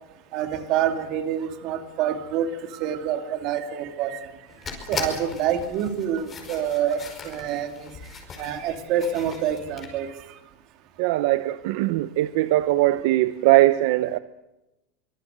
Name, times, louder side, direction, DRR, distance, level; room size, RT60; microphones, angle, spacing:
voice 1, 0.3-4.2 4.9-7.9 8.4-10.1, right 9 dB, 45° right, 2.6 m, -27 dB
sound 1, 4.5-9.9, left 5 dB, 20° left, 5.3 m, -38 dB
voice 2, 11.0-14.2, right 17 dB, 60° right, 0.8 m, -20 dB
25.0 x 22.0 x 8.0 m
supercardioid pair, 165°, 0 cm